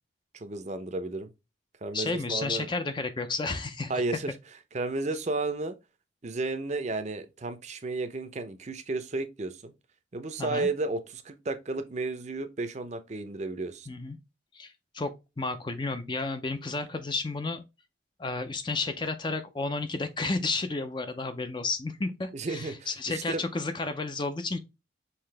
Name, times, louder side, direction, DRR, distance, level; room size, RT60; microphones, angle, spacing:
voice 1, 0.3-1.3 1.8-2.7 3.9-4.3 4.7-5.7 6.2-9.7 10.1-13.9 22.3-23.4, right 3 dB, 35° right, 0.5 m, -33 dB
voice 2, 1.9-3.9 10.4-10.7 13.9-14.2 14.5-17.6 18.2-24.6, left 3 dB, 25° left, 0.4 m, -32 dB
5.7 x 2.8 x 3.3 m
head